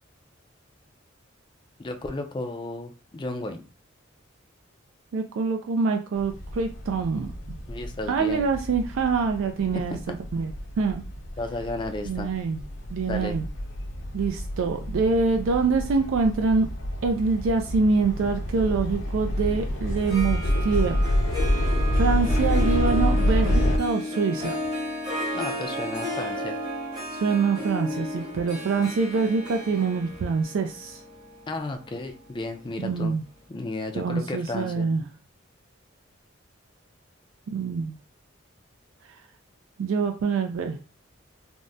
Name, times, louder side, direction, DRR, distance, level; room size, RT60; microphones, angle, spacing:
voice 1, 1.8-3.6 7.7-8.5 9.9-10.2 11.4-12.3 13.0-13.4 25.3-26.6 31.5-33.1 33.5-34.9, left 2 dB, 25° left, 5 dB, 0.4 m, -33 dB
voice 2, 5.1-7.3 8.1-10.0 10.3-11.0 12.0-12.6 12.9-13.5 14.1-16.7 17.0-21.0 21.9-24.5 27.1-31.0 32.8-33.2 34.0-35.0 37.5-38.0 39.8-40.8, right 4 dB, 75° right, 5 dB, 0.3 m, -25 dB
sound 1, 6.2-23.8, left 1 dB, 75° left, 0.7 m, -28 dB
Harp, 20.1-32.8, left 1 dB, 20° right, 0.8 m, -33 dB
3.4 x 2.0 x 2.6 m, 0.34 s
head